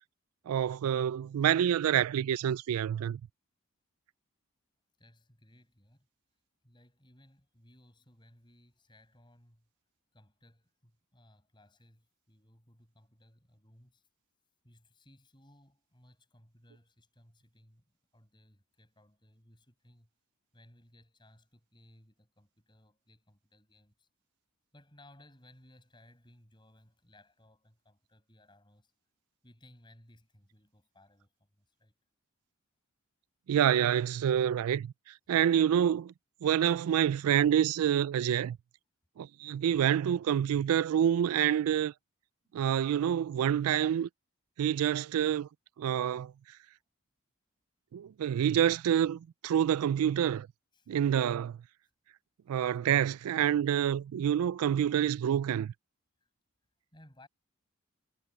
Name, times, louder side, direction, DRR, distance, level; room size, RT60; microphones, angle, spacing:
voice 1, 0.5-3.2 33.5-34.9 35.3-36.1 36.4-38.6 39.2-41.9 42.5-44.1 44.6-45.5 45.8-46.3 47.9-50.5 50.9-51.6 52.5-55.7, right 9 dB, 80° right, 0.3 m, -27 dB
voice 2, 5.0-6.1 6.6-9.7 10.1-14.1 14.6-20.1 20.5-24.1 24.7-28.9 29.4-31.9 42.4-42.5 50.7-50.9 52.5-52.6 56.2-56.3 56.9-57.3, left 1 dB, 20° left, 7.0 m, -61 dB
head